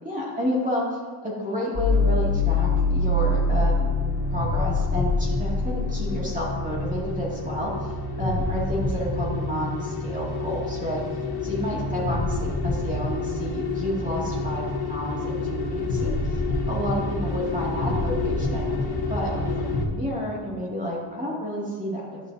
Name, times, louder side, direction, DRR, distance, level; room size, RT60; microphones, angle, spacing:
voice 1, 0.0-3.9 4.3-11.0 11.4-16.2 16.7-18.7 19.1-22.2, equal, 15° right, -6 dB, 2.2 m, -30 dB
sound 1, 1.7-19.8, left 2 dB, 50° left, 1.6 m, -26 dB
11.5 x 6.1 x 2.7 m, 1.4 s
cardioid pair, 95°, 50 cm